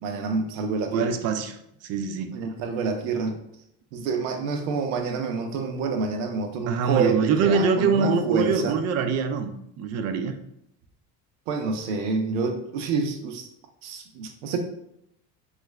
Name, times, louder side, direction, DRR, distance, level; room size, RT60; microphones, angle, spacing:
voice 1, 0.0-1.2 2.3-3.4 3.9-8.8 11.5-13.5 13.8-14.6, right 4 dB, 90° right, 5 dB, 0.6 m, -28 dB
voice 2, 0.9-1.6 1.8-2.3 6.7-9.5 9.8-10.3, right 5 dB, 45° right, 9 dB, 0.4 m, -24 dB
3.1 x 2.4 x 3.1 m, 0.76 s
supercardioid pair, 105°, 35 cm